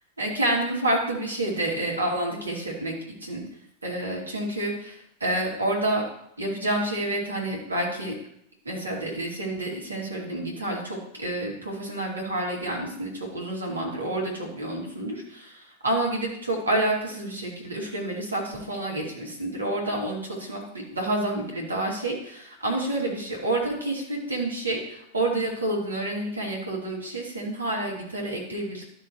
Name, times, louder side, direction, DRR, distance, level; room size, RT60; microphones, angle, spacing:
voice 1, 0.2-2.9 3.2-3.4 3.8-6.0 6.4-8.1 8.6-28.8, right 1 dB, 80° right, -2 dB, 2.8 m, -29 dB
12.5 x 6.4 x 3.2 m, 0.71 s
figure-of-eight pair, 90°, 0 cm